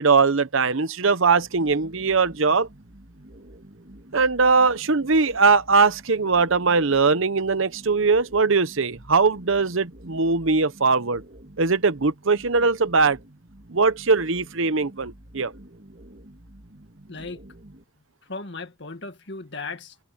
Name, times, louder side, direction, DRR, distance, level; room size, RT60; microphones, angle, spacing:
voice 1, 0.0-2.7 4.1-11.2 11.6-13.2 13.7-15.5, right 4 dB, 70° right, 0.9 m, -20 dB
sound 1, 1.3-17.8, right 1 dB, 45° right, 2.4 m, -48 dB
voice 2, 17.1-17.4 18.3-20.0, left 3 dB, 55° left, 2.0 m, -36 dB
head